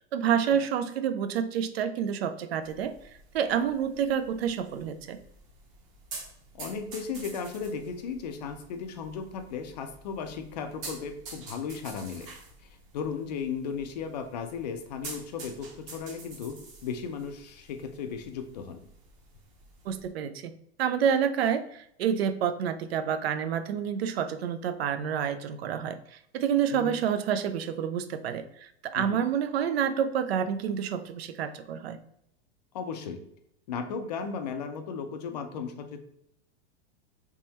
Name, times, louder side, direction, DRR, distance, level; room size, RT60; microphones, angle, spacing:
voice 1, 0.1-3.0 3.3-5.2 19.9-20.5 20.8-32.0, right 8 dB, 65° right, 10 dB, 0.5 m, -28 dB
sound 1, 2.6-20.1, right 3 dB, 30° right, 0.8 m, -48 dB
voice 2, 6.5-12.3 12.6-16.6 16.8-18.8 26.7-26.9 28.9-29.2 32.7-33.2 33.7-36.0, left 6 dB, 40° left, 7 dB, 0.4 m, -36 dB
3.6 x 3.1 x 2.8 m, 0.74 s
supercardioid pair, 170°, 33 cm